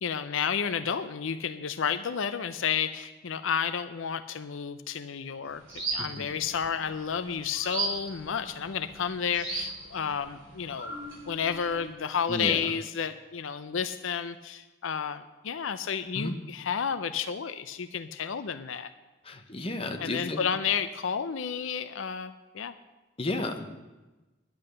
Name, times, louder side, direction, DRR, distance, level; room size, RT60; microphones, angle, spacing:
voice 1, 0.0-5.6 5.9-11.0 11.3-18.9 20.0-22.7, left 7 dB, 75° left, 11 dB, 0.5 m, -31 dB
sound 1, 5.5-11.9, right 3 dB, 85° right, 5.3 m, -37 dB
voice 2, 12.3-12.6 16.1-16.3 19.3-20.4 23.2-23.7, left 2 dB, 30° left, 4 dB, 1.0 m, -32 dB
10.5 x 9.8 x 6.6 m, 1.1 s
head